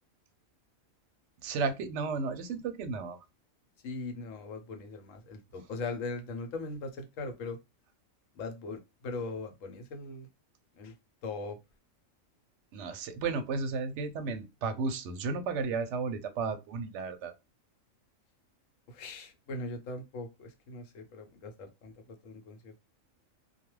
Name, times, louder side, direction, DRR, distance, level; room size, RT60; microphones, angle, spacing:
voice 1, 1.4-3.2 12.7-17.3, right 4 dB, 70° right, 0.8 m, -33 dB
voice 2, 3.8-7.6 8.3-10.3 10.8-10.9 11.2-11.6 18.9-22.8, left 3 dB, 75° left, 1.0 m, -40 dB
2.3 x 2.2 x 3.0 m
omnidirectional pair, 1.4 m